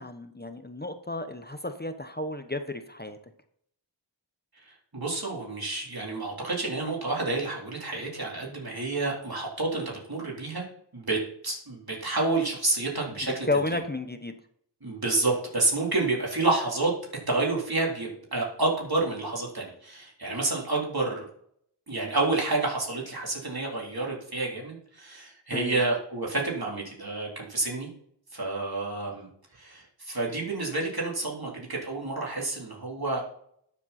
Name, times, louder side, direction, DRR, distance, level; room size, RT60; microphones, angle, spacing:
voice 1, 0.0-3.2 13.5-14.3 25.5-25.8, left 2 dB, 20° left, 8 dB, 0.9 m, -32 dB
voice 2, 4.6-10.7 10.9-13.5 14.8-16.9 17.3-21.3 21.9-27.9 28.3-29.3 29.5-33.2, right 2 dB, 55° right, -3 dB, 3.6 m, -29 dB
11.5 x 7.4 x 4.3 m, 0.66 s
wide cardioid pair, 45°, 44 cm